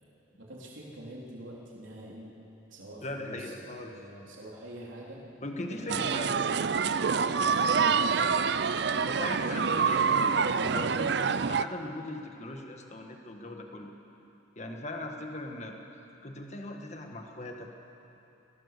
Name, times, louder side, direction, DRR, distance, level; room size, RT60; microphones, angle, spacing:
voice 1, 0.4-2.3 2.7-5.3 5.8-6.6 7.0-8.2, right 1 dB, 80° right, -4 dB, 3.6 m, -45 dB
voice 2, 3.0-3.9 5.4-6.3 8.9-13.9 14.5-15.7 16.2-17.8, left 1 dB, 35° left, 3 dB, 1.7 m, -39 dB
sound 1, 5.9-11.6, right 5 dB, 55° right, 0.5 m, -26 dB
22.5 x 18.0 x 6.9 m, 2.9 s
head